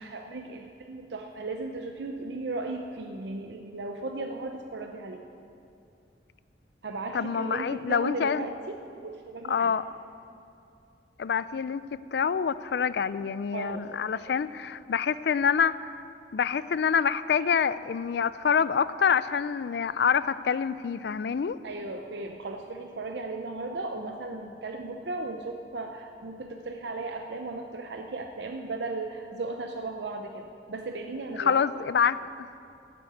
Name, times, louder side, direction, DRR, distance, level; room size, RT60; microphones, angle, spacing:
voice 1, 0.0-5.2 6.8-9.7 13.5-14.3 21.6-31.6, right 2 dB, 70° right, 4 dB, 0.7 m, -36 dB
voice 2, 7.1-8.5 9.5-9.8 11.2-15.9 16.3-21.6 31.4-32.5, left 7 dB, 65° left, 16 dB, 0.4 m, -26 dB
10.5 x 7.8 x 9.4 m, 2.6 s
head